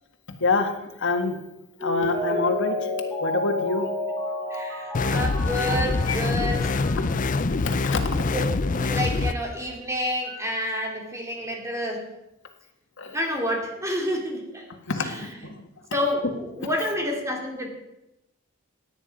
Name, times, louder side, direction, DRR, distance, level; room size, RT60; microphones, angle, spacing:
voice 1, 0.4-1.4 1.8-2.9 3.2-3.9 6.1-6.2 7.0-7.1 7.7-8.3 10.3-10.4 13.0-13.2 14.9-15.6, left 3 dB, 65° left, 5 dB, 1.7 m, -26 dB
Mallet percussion, 1.8-7.3 7.7-7.8, left 2 dB, 15° left, 5.9 m, -31 dB
voice 2, 4.5-6.7 8.3-12.1 13.1-14.7 15.0-15.5 15.9-17.7, equal, 15° right, 1 dB, 2.5 m, -29 dB
sound 1, 4.9-9.3, left 3 dB, 40° left, 0.5 m, -25 dB
16.5 x 9.3 x 5.2 m, 0.92 s
head